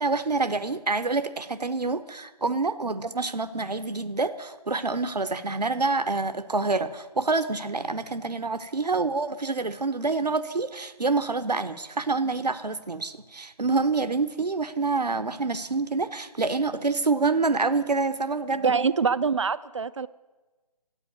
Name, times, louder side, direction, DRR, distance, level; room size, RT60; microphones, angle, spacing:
voice 1, 0.0-18.9, right 3 dB, 80° right, 10 dB, 0.9 m, -27 dB
voice 2, 18.6-20.1, right 5 dB, 45° right, 16 dB, 0.5 m, -24 dB
13.5 x 8.8 x 9.5 m, 1.2 s
figure-of-eight pair, 150°, 21 cm